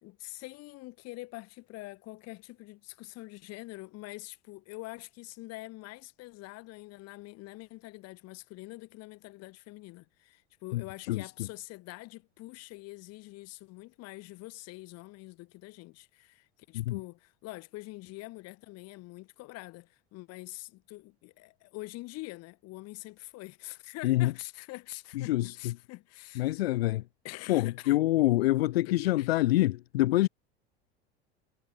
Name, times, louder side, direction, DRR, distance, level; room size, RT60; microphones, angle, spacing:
voice 1, 0.0-26.7 27.2-28.0 28.8-29.3, left 20 dB, 55° left, 3.5 m, -45 dB
voice 2, 25.1-25.5 26.4-27.0 27.5-30.3, left 17 dB, 70° left, 1.2 m, -26 dB
hypercardioid pair, 75°, 31 cm